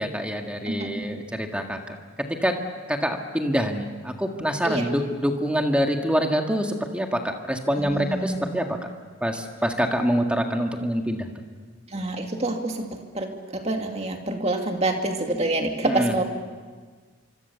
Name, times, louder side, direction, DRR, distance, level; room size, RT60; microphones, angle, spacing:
voice 1, 0.0-1.8 2.4-2.5 2.9-8.8 9.2-11.3 15.8-16.1, equal, 5° right, 3 dB, 1.8 m, -25 dB
voice 2, 7.8-8.5 11.9-16.2, right 2 dB, 30° right, 3 dB, 2.3 m, -27 dB
26.0 x 25.0 x 7.0 m, 1.5 s
head